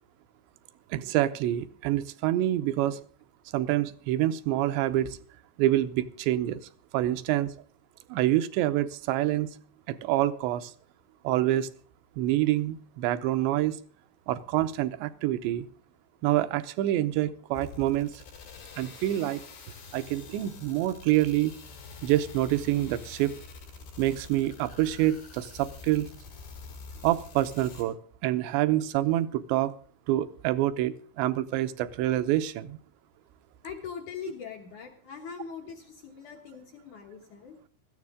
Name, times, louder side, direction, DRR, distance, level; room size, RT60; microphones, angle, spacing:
voice 1, 0.9-3.0 3.5-5.2 5.6-7.5 8.1-9.5 9.9-10.7 11.2-11.7 12.2-13.8 14.3-15.7 16.2-18.1 18.8-19.4 19.9-21.5 22.0-23.4 24.0-26.1 27.0-28.0 28.2-29.7 30.1-32.8, right 14 dB, 80° right, 12 dB, 2.9 m, -26 dB
sound 1, 17.6-27.8, left 5 dB, 85° left, 6.5 m, -46 dB
voice 2, 33.6-37.6, left 7 dB, 65° left, 3 dB, 2.0 m, -41 dB
17.0 x 13.5 x 3.6 m, 0.43 s
omnidirectional pair, 5.2 m